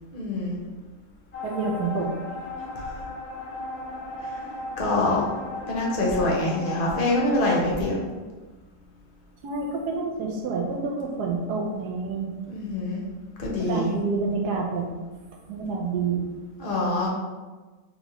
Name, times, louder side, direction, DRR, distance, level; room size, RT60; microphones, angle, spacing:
voice 1, 0.1-0.6 4.8-5.2 5.7-8.0 12.5-13.0 13.4-13.9 16.6-17.1, left 2 dB, 40° left, -2 dB, 0.8 m, -25 dB
sound 1, 1.3-7.3, left 3 dB, 70° left, 0.4 m, -36 dB
voice 2, 1.4-2.1 9.4-12.3 13.6-14.9 15.5-16.3, right 4 dB, 70° right, 0 dB, 1.3 m, -28 dB
4.3 x 3.4 x 3.0 m, 1.3 s
omnidirectional pair, 1.9 m